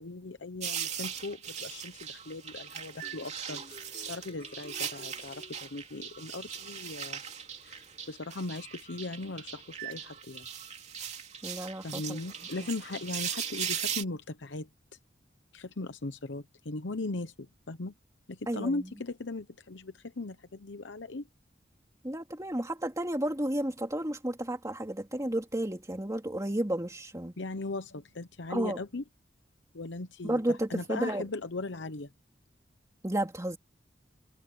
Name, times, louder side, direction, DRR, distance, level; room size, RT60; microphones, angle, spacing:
voice 1, 0.0-7.2 7.6-10.5 11.8-14.7 15.5-17.9 18.3-21.2 27.4-29.0 29.7-32.1, left 2 dB, 90° left, 0.9 m, -38 dB
sound 1, 0.6-14.0, right 8 dB, 40° right, 2.9 m, -39 dB
sound 2, 3.0-6.5, left 1 dB, 35° left, 7.2 m, -53 dB
voice 2, 11.4-12.2 18.5-18.9 22.0-27.3 28.5-28.8 30.2-31.2 33.0-33.6, right 1 dB, 20° right, 2.8 m, -32 dB
head